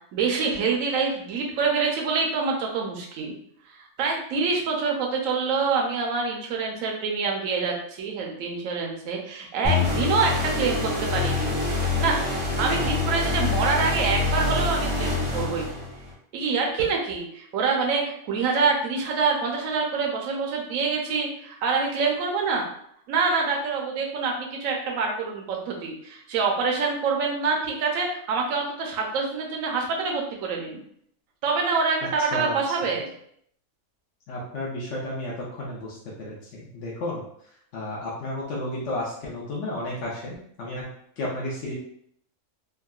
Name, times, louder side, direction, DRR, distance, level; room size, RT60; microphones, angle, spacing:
voice 1, 0.1-3.4 3.7-11.5 11.8-12.2 12.6-15.7 16.3-22.7 23.1-30.8 31.4-33.1, right 4 dB, 70° right, 0 dB, 1.0 m, -26 dB
sound 1, 9.6-16.1, left 3 dB, 45° right, 0.4 m, -26 dB
voice 2, 32.3-32.7 34.3-37.2 37.7-40.9 41.2-41.7, left 1 dB, 65° left, -4 dB, 0.9 m, -32 dB
3.6 x 2.1 x 2.3 m, 0.69 s
omnidirectional pair, 1.5 m